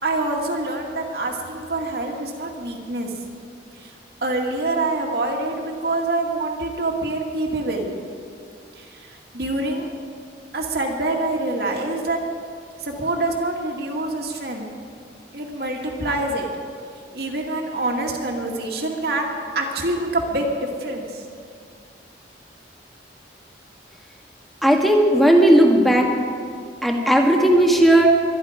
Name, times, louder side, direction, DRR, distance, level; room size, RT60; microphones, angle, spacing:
voice 1, 0.0-3.1 3.8-3.9 4.2-7.9 8.8-9.9 10.5-12.2 12.8-14.7 15.3-16.5 17.1-20.5 20.8-21.2, right 2 dB, 60° right, 0 dB, 2.1 m, -26 dB
voice 2, 24.6-26.1 26.8-28.1, right 1 dB, ahead, 1 dB, 1.5 m, -15 dB
23.5 x 10.5 x 5.1 m, 2.3 s
head